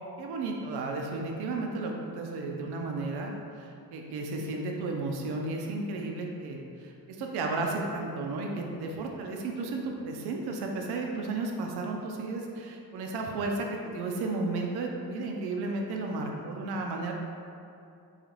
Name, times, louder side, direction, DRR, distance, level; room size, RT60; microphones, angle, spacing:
voice 1, 0.2-17.1, right 3 dB, 70° right, 1 dB, 0.5 m, -33 dB
3.9 x 2.4 x 3.0 m, 2.6 s
cardioid pair, 65°, 41 cm